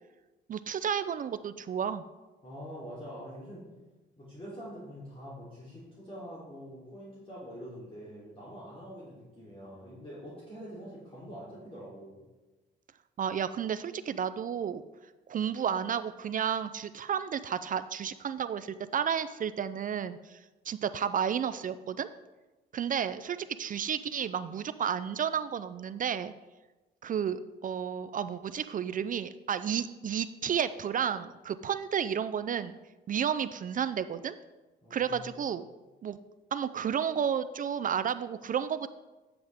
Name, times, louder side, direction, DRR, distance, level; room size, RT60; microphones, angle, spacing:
voice 1, 0.5-2.0 13.2-14.8 15.3-20.4 20.7-22.1 22.7-26.3 27.0-32.8 33.1-34.4 34.9-35.6 36.0-36.2 36.5-38.9, right 8 dB, 45° right, 13 dB, 0.4 m, -32 dB
voice 2, 2.4-3.7 4.2-12.2 34.8-35.5, equal, 25° left, -8 dB, 3.2 m, -45 dB
9.4 x 7.8 x 3.5 m, 1.1 s
cardioid pair, 90°, 20 cm